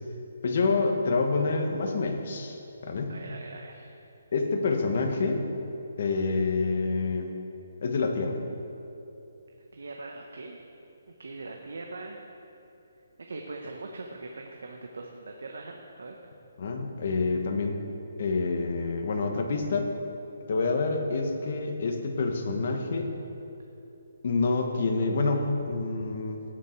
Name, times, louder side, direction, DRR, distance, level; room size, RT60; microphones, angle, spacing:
voice 1, 0.4-3.1 4.3-5.5 6.0-7.3 7.8-8.4 16.6-17.8 18.2-19.9 20.5-23.1 24.2-26.4, left 3 dB, 50° left, 4 dB, 1.3 m, -27 dB
voice 2, 3.1-3.9 9.7-10.7 11.2-12.3 13.3-16.1, right 3 dB, 80° right, 2 dB, 1.0 m, -41 dB
17.5 x 6.4 x 4.6 m, 2.9 s
hypercardioid pair, 170°, 0 cm